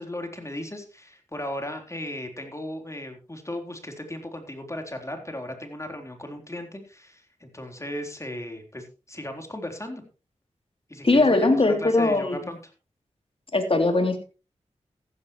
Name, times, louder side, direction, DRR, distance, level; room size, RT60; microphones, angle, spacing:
voice 1, 0.0-10.0 10.9-12.7, left 1 dB, 25° left, 4 dB, 3.8 m, -36 dB
voice 2, 11.0-12.4 13.5-14.2, left 2 dB, 45° left, 5 dB, 3.1 m, -20 dB
14.5 x 12.5 x 3.1 m, 0.32 s
cardioid pair, 45°, 13 cm